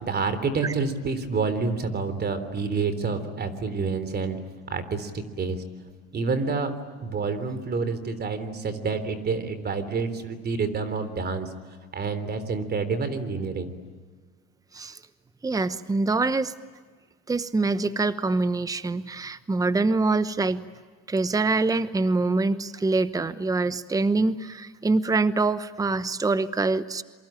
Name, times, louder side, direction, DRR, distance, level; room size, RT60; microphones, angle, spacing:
voice 1, 0.0-5.6 6.1-6.7 7.0-11.5 11.9-13.7, right 4 dB, 30° right, 12 dB, 3.6 m, -28 dB
voice 2, 15.4-16.5 17.3-20.6 21.1-27.0, right 3 dB, 10° right, 14 dB, 1.0 m, -25 dB
27.5 x 24.0 x 9.0 m, 1.5 s
supercardioid pair, 105°, 30 cm